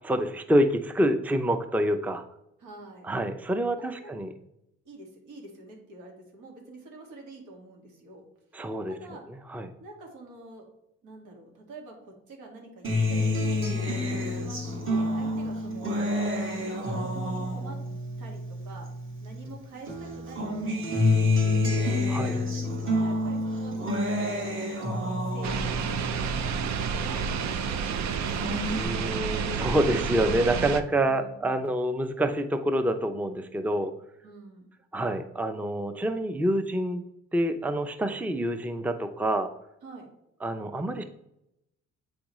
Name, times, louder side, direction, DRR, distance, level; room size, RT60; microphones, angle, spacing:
voice 1, 0.1-2.2 3.0-4.3 8.5-9.0 9.5-9.7 22.1-22.4 28.7-33.9 34.9-37.0 37.3-39.5 40.4-41.0, right 1 dB, 5° right, 9 dB, 0.5 m, -27 dB
voice 2, 2.6-3.1 3.8-4.2 4.9-8.2 8.9-9.2 9.8-10.7 11.0-12.0 12.3-14.6 14.9-17.8 18.2-18.9 19.2-21.6 22.1-24.5 25.0-28.5 30.9-31.6 34.2-34.7 39.8-40.1, right 2 dB, 85° right, 1 dB, 2.0 m, -47 dB
Acoustic guitar, 12.8-19.5 19.9-27.5 27.9-28.8, left 2 dB, 40° right, 1.7 m, -29 dB
sound 1, 25.4-30.8, right 6 dB, 65° right, 0.6 m, -30 dB
7.9 x 5.0 x 3.0 m, 0.83 s
cardioid pair, 90°, 30 cm